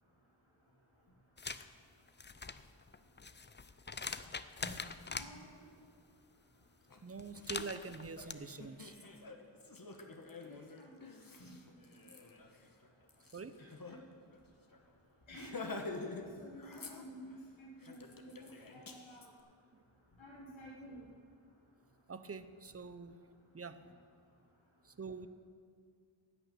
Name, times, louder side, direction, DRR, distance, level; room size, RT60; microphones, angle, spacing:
sound 1, 1.4-1.7 2.1-5.3 7.2-8.3, left 4 dB, 25° left, 0.5 m, -43 dB
voice 1, 5.1-5.6 10.4-10.9 11.4-11.6 13.9-14.0 15.3-19.2 20.2-21.1, equal, 85° left, -3 dB, 1.5 m, -51 dB
Laughter, 6.9-7.0 7.3-14.0 14.3-14.4 14.7-14.9 15.3-16.3 16.6-17.4 17.8-19.3, left 3 dB, 45° left, 1.2 m, -48 dB
voice 2, 7.0-8.9 13.3-13.5 22.1-23.1 23.5-23.8 25.0-25.3, right 4 dB, 30° right, 12 dB, 0.7 m, -45 dB
11.0 x 6.4 x 9.1 m, 2.2 s
cardioid pair, 40°, 46 cm